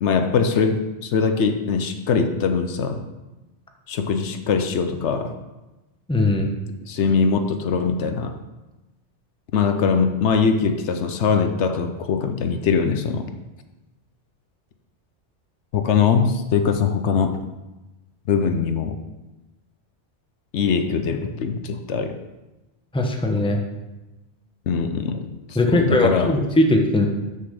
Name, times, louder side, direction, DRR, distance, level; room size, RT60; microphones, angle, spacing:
voice 1, 0.0-3.0 3.9-5.4 6.9-8.4 9.5-13.2 15.7-17.4 18.3-18.9 20.5-22.2 24.7-26.4, left 5 dB, 75° left, 8 dB, 1.0 m, -22 dB
voice 2, 6.1-6.5 22.9-23.6 25.5-27.1, left 1 dB, 5° left, 2 dB, 0.8 m, -19 dB
6.5 x 5.6 x 6.6 m, 1.1 s
omnidirectional pair, 1.2 m